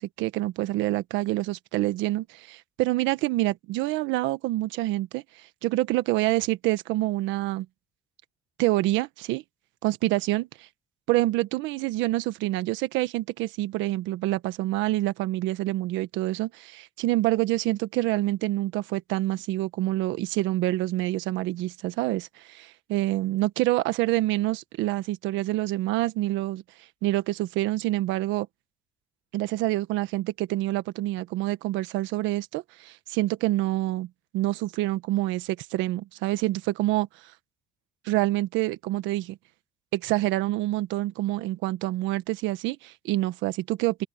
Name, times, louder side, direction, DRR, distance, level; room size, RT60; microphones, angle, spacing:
voice 1, 0.0-7.7 8.6-9.4 9.8-10.7 11.1-26.6 27.0-28.5 29.3-34.1 34.3-37.1 38.0-39.4 39.9-44.0, right 17 dB, 85° right, 1.4 m, -27 dB
open air
cardioid pair, 95°, 19 cm